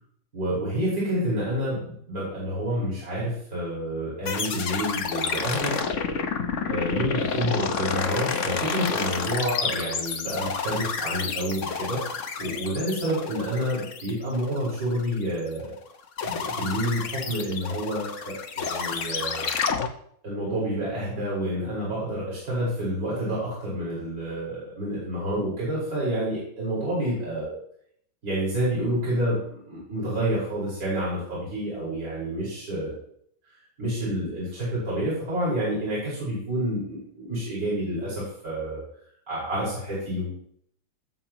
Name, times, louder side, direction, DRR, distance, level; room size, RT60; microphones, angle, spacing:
voice 1, 0.3-5.8 6.7-15.7 16.2-19.5 20.2-27.6 28.2-32.9 33.8-38.8 39.3-40.4, equal, 50° right, -8 dB, 5.3 m, -29 dB
sound 1, 4.3-15.7 16.2-19.9, left 5 dB, 50° left, 1.1 m, -30 dB
17.5 x 7.9 x 3.0 m, 0.66 s
omnidirectional pair, 2.1 m